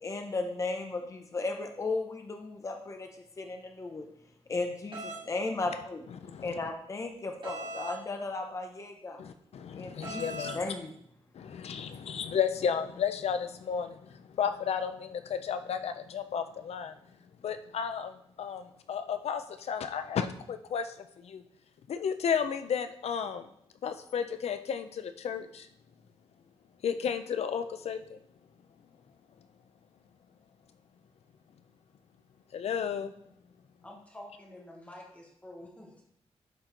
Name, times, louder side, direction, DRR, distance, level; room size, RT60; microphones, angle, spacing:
voice 1, 0.0-3.1 3.4-4.1 4.5-6.0 6.4-9.2 9.7-10.9, left 3 dB, 30° left, 4 dB, 0.8 m, -35 dB
sound 1, 4.9-5.2 7.4-8.0 10.0-10.6, right 2 dB, 45° right, 2.0 m, -39 dB
voice 2, 6.2-6.6 9.2-10.6 11.3-16.9 17.4-18.1 18.4-21.4 21.9-23.4 23.8-25.7 26.8-28.2 32.5-33.1, left 7 dB, 70° left, 9 dB, 0.6 m, -33 dB
voice 3, 33.8-36.0, left 1 dB, 10° left, 0 dB, 1.4 m, -48 dB
11.5 x 4.6 x 3.9 m, 0.71 s
wide cardioid pair, 165°, 11 cm